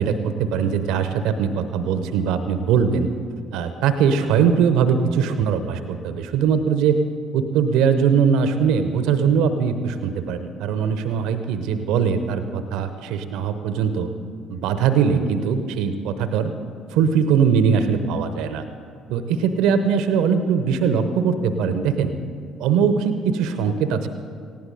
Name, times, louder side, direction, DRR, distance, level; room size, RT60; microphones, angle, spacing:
voice 1, 0.0-3.1 3.5-7.0 7.3-14.1 14.5-16.5 16.9-18.6 19.1-22.1 22.6-24.1, right 6 dB, 65° right, 10 dB, 0.8 m, -21 dB
19.0 x 15.5 x 4.0 m, 2.2 s
figure-of-eight pair, 50°, 0 cm